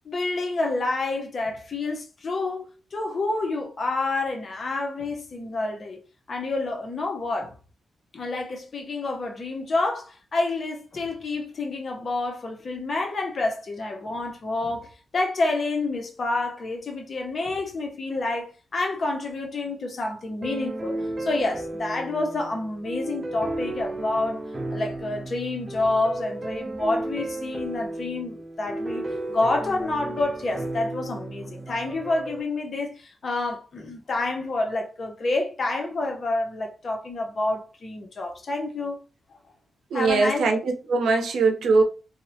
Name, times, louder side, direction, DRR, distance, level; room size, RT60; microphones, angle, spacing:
voice 1, 0.0-6.0 6.3-7.5 8.1-24.4 24.7-39.0 39.9-40.5, left 2 dB, 50° left, 0.6 m, -28 dB
sound 1, 20.4-32.4, right 1 dB, 25° right, 0.4 m, -34 dB
voice 2, 39.9-41.8, right 4 dB, 80° right, 0.5 m, -21 dB
2.7 x 2.0 x 2.6 m
cardioid pair, 80°, 0 cm